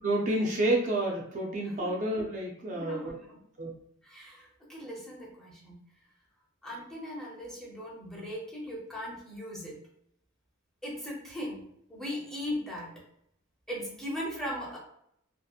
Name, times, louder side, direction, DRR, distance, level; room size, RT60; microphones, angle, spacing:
voice 1, 0.0-3.1 3.6-3.7, right 1 dB, 40° right, -2 dB, 0.4 m, -29 dB
voice 2, 2.7-3.4 4.0-5.8 6.6-9.8 10.8-11.6 11.9-12.9 13.7-14.8, left 1 dB, ahead, -4 dB, 0.6 m, -38 dB
2.7 x 2.4 x 2.3 m, 0.71 s
head